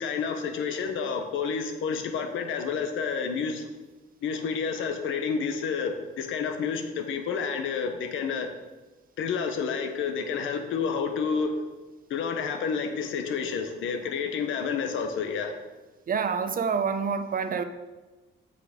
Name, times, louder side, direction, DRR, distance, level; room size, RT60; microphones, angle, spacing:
voice 1, 0.0-3.6 4.2-8.5 9.2-11.5 12.1-15.6, left 6 dB, 80° left, 5 dB, 1.0 m, -29 dB
voice 2, 16.1-17.6, right 6 dB, 45° right, 9 dB, 0.7 m, -27 dB
7.8 x 6.0 x 5.1 m, 1.2 s
cardioid pair, 90°, 20 cm